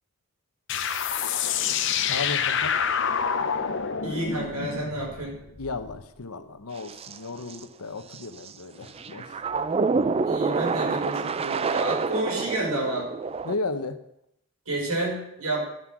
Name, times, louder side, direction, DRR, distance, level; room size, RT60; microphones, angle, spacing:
sound 1, 0.7-6.0, left 7 dB, 55° left, 0.8 m, -27 dB
voice 1, 2.1-2.8 5.6-9.4 13.4-14.0, left 3 dB, 85° left, 10 dB, 1.0 m, -34 dB
voice 2, 4.0-5.4 10.2-13.1 14.7-15.7, right 2 dB, 85° right, -2 dB, 5.1 m, -30 dB
sound 2, 6.8-7.2 7.5-7.6 8.1-8.5 8.9-13.6, right 4 dB, 25° right, 0.3 m, -27 dB
12.0 x 7.6 x 6.2 m, 0.80 s
head